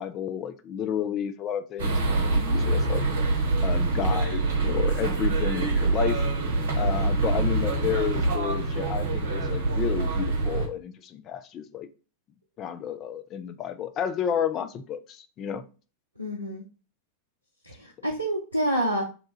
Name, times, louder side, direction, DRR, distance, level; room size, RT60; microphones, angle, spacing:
voice 1, 0.0-3.0 3.6-6.2 6.8-11.9 12.6-15.6, left 9 dB, 30° left, 0.4 m, -31 dB
sound 1, 1.8-10.7, right 3 dB, 60° right, 0.8 m, -25 dB
voice 2, 16.2-16.6 17.6-19.0, right 1 dB, 90° right, 0.5 m, -28 dB
2.8 x 2.3 x 4.0 m
figure-of-eight pair, 90°, 0 cm